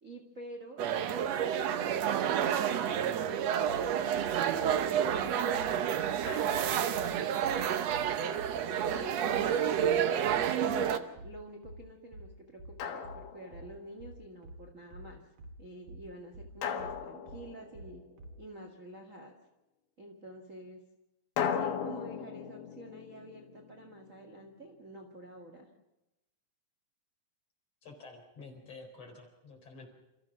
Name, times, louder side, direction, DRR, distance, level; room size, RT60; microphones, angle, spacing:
voice 1, 0.0-6.0 10.6-15.2 15.6-18.0 18.4-19.3 20.0-20.8 21.5-25.7, right 1 dB, 30° right, 2 dB, 1.6 m, -49 dB
sound 1, 0.8-11.0, right 9 dB, 70° right, 1.6 m, -29 dB
sound 2, 3.7-18.4, right 1 dB, 55° right, 1.5 m, -48 dB
Drum, 6.3-6.9 8.9-10.0 12.8-14.0 16.6-18.3 21.4-24.3, left 7 dB, 90° left, 3.4 m, -38 dB
voice 2, 27.8-29.9, left 3 dB, 45° left, 2 dB, 5.1 m, -50 dB
28.5 x 15.0 x 6.1 m, 0.96 s
omnidirectional pair, 4.2 m